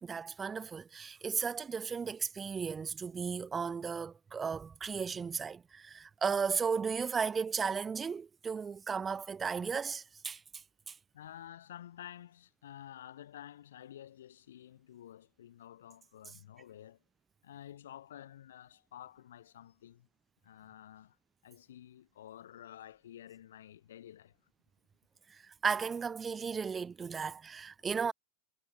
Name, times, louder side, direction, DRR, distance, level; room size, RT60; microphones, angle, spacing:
voice 1, 0.0-10.4 10.9-11.0 25.3-28.1, right 6 dB, 15° right, 2.8 m, -35 dB
voice 2, 11.1-17.0 17.4-20.1 20.4-21.2 21.4-24.4, left 11 dB, 60° left, 6.9 m, -51 dB
figure-of-eight pair, 90°, 0 cm